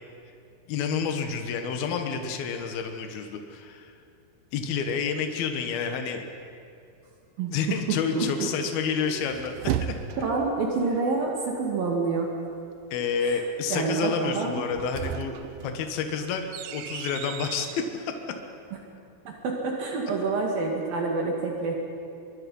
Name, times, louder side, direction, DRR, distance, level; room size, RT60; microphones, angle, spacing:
voice 1, 0.7-3.9 4.5-6.2 7.5-9.9 12.9-15.4 15.6-18.1, left 6 dB, 70° left, 5 dB, 3.2 m, -29 dB
voice 2, 7.9-8.5 10.2-12.3 13.2-13.4 13.7-14.6 19.3-21.9, right 4 dB, 60° right, 0 dB, 3.7 m, -27 dB
sound 1, 9.0-10.5 14.6-17.9, right 10 dB, 80° right, 2.0 m, -34 dB
24.0 x 23.0 x 5.5 m, 2.5 s
omnidirectional pair, 4.7 m